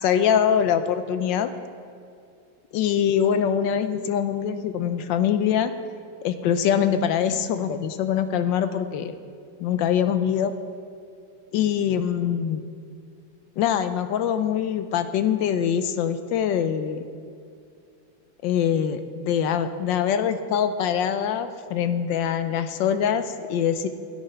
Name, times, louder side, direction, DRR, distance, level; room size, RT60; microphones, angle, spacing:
voice 1, 0.0-1.5 2.7-5.7 6.2-9.1 9.6-10.5 11.5-12.7 13.6-17.1 18.4-23.9, left 8 dB, 75° left, 10 dB, 1.3 m, -23 dB
13.0 x 7.9 x 5.6 m, 2.4 s
omnidirectional pair, 2.1 m